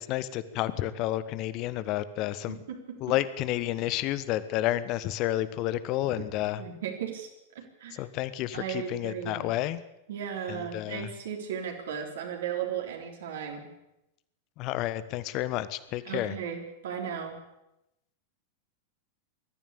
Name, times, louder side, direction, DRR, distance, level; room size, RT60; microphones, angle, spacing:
voice 1, 0.0-2.6 3.0-6.6 7.9-9.8 10.5-11.1 14.6-16.3, left 14 dB, 40° left, 15 dB, 1.3 m, -30 dB
voice 2, 2.5-3.0 6.6-7.3 7.5-8.0 8.5-9.5 10.1-13.7 16.0-17.4, right 8 dB, 60° right, 1 dB, 3.8 m, -36 dB
21.5 x 14.0 x 8.6 m, 0.88 s
figure-of-eight pair, 90°, 0 cm